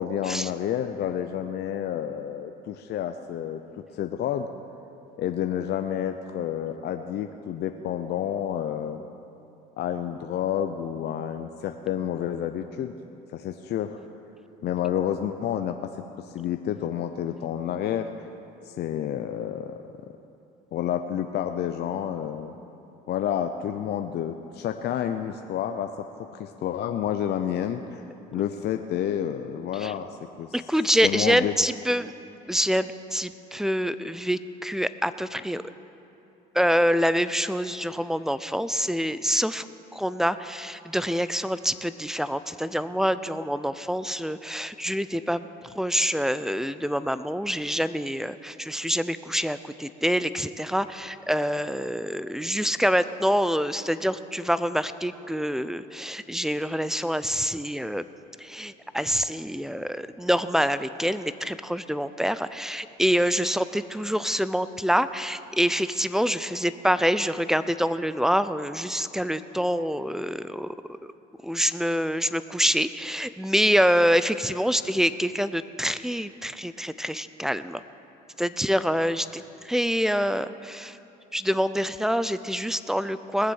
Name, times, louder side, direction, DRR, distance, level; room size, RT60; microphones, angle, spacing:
voice 1, 0.0-3.6 3.9-4.5 5.2-9.0 9.8-12.9 13.3-14.0 14.6-15.9 16.2-18.1 18.6-19.8 20.7-22.5 23.1-28.0 28.3-30.1 30.4-30.5 31.0-31.6, left 10 dB, 55° left, 7 dB, 0.7 m, -29 dB
voice 2, 30.5-32.1 32.5-35.6 36.5-39.7 39.9-58.1 58.4-70.7 71.4-77.8 78.4-81.0 81.3-83.5, equal, ahead, 14 dB, 0.5 m, -26 dB
20.0 x 7.4 x 6.5 m, 2.8 s
supercardioid pair, 75°, 20 cm